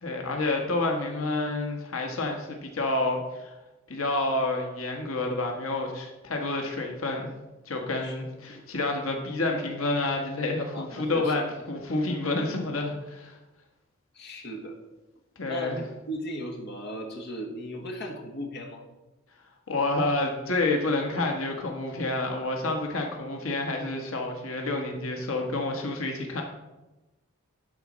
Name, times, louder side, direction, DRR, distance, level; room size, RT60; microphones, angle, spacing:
voice 1, 0.0-3.5 3.9-7.3 7.7-13.4 15.4-15.8 19.7-26.4, left 2 dB, 90° left, 2 dB, 1.3 m, -29 dB
voice 2, 10.7-11.4 11.8-11.9 14.1-14.7 15.5-18.9, equal, 55° left, 1 dB, 1.4 m, -37 dB
11.5 x 4.1 x 6.2 m, 1.0 s
head